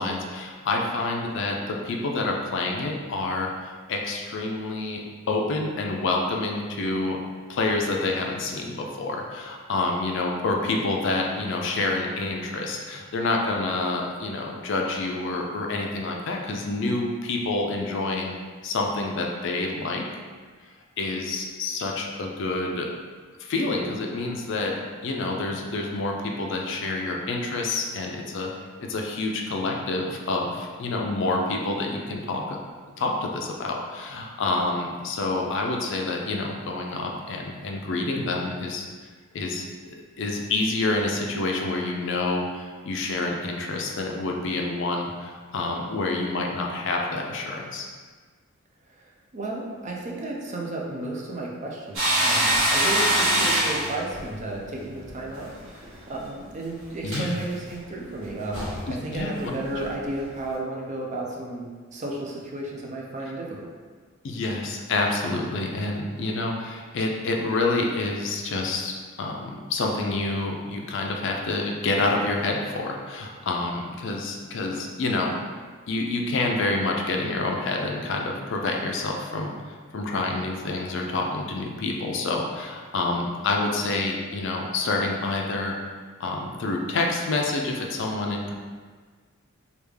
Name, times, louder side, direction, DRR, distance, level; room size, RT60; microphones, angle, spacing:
voice 1, 0.0-7.2 7.5-18.3 18.6-20.1 21.0-22.9 23.4-28.5 28.8-32.6 33.0-38.9 39.3-47.9 53.4-53.5 57.0-57.4 58.9-59.8 64.2-75.3 75.9-79.5 79.9-85.8 86.2-88.5, left 2 dB, 60° left, 1 dB, 0.4 m, -28 dB
voice 2, 48.9-63.7, right 2 dB, 35° right, -1 dB, 0.5 m, -33 dB
sound 1, 51.9-55.5 55.7-55.9 57.0-57.3 58.2-58.3 58.5-58.9 59.1-59.2 59.8-59.9, right 1 dB, 60° right, 1.5 m, -23 dB
3.4 x 2.3 x 3.3 m, 1.5 s
head